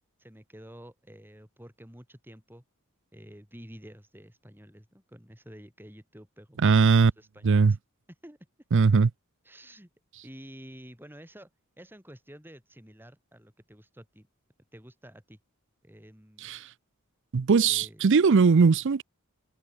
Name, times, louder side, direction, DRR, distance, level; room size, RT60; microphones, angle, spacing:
voice 1, 0.2-2.6 3.1-7.8 8.2-8.4 9.4-9.9 10.2-11.5 11.8-14.3 14.7-15.4 15.8-16.5 17.7-18.0, equal, 10° right, 7.1 m, -50 dB
voice 2, 6.6-7.1 7.4-7.7 8.7-9.1 16.4-16.6 17.3-19.0, right 5 dB, 55° right, 0.5 m, -20 dB
head